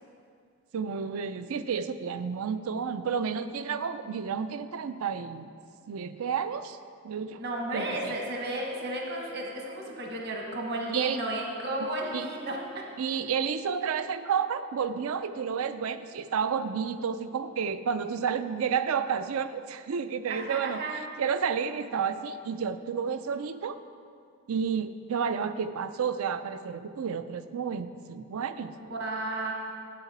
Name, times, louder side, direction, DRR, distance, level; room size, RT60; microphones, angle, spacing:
voice 1, 0.7-5.5 5.9-6.8 7.0-7.4 7.7-8.2 10.9-11.2 11.8-12.3 13.0-20.8 21.2-23.8 24.5-28.7, right 6 dB, 70° right, 12 dB, 0.4 m, -31 dB
voice 2, 7.4-12.9 20.3-20.9 28.8-29.5, right 1 dB, 50° right, 0 dB, 1.2 m, -33 dB
9.7 x 8.0 x 4.2 m, 2.3 s
head